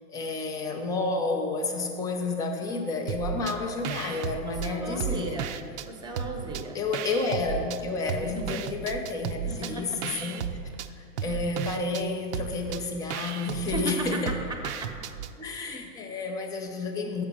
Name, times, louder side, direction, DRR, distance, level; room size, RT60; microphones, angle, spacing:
voice 1, 0.1-5.4 6.7-10.4 11.0-14.3 15.4-17.2, left 3 dB, 10° left, 3 dB, 0.3 m, -30 dB
sound 1, 3.1-3.6 3.8-5.9 6.2-7.8 8.1-15.3, right 8 dB, 60° right, 0.5 m, -34 dB
voice 2, 4.4-5.6 5.8-6.8 8.2-8.6 9.5-10.3 11.2-11.4 13.7-14.2 14.5-14.9, right 2 dB, 10° right, 3 dB, 0.8 m, -36 dB
7.8 x 5.2 x 7.0 m, 2.4 s
hypercardioid pair, 135°, 40 cm